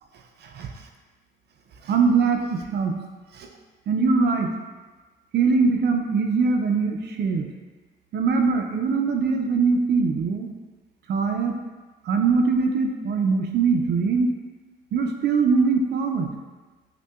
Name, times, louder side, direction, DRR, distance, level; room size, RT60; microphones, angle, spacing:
voice 1, 1.8-2.9 3.3-3.5 3.9-4.5 5.3-7.5 8.1-10.5 11.1-11.5 12.0-14.3 14.9-16.3, right 4 dB, 55° right, 3 dB, 0.4 m, -22 dB
5.4 x 2.2 x 2.3 m, 1.3 s
cardioid pair, 90°, 20 cm